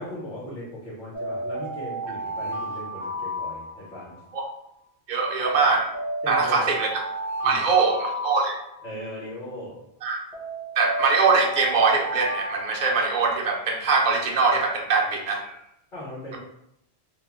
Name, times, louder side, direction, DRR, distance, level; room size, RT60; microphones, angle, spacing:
voice 1, 0.0-4.1 6.2-6.6 7.4-7.6 8.8-9.7 15.9-16.4, left 1 dB, 50° left, -9 dB, 1.5 m, -38 dB
sound 1, 1.1-4.3 5.4-9.2 10.3-13.5, right 1 dB, 35° left, 1.0 m, -33 dB
voice 2, 5.1-5.9 6.3-6.9 7.4-8.6 10.0-10.2 10.8-15.5, right 4 dB, 55° right, 0 dB, 0.7 m, -22 dB
2.9 x 2.2 x 3.4 m, 0.80 s
omnidirectional pair, 1.1 m